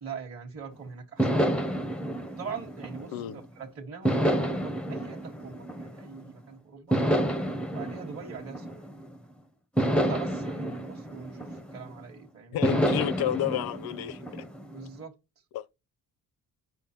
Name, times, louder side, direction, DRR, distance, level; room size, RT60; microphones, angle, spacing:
voice 1, 0.0-1.5 2.3-7.0 7.7-8.9 9.9-12.7 14.7-15.1, right 6 dB, 40° right, 1.3 m, -42 dB
sound 1, 1.2-3.5 4.0-6.3 6.9-9.2 9.8-12.0 12.6-14.9, right 1 dB, 5° left, 0.6 m, -29 dB
voice 2, 12.5-14.2 15.5-15.7, left 12 dB, 80° left, 0.6 m, -30 dB
9.0 x 5.2 x 2.8 m
cardioid pair, 130°, 36 cm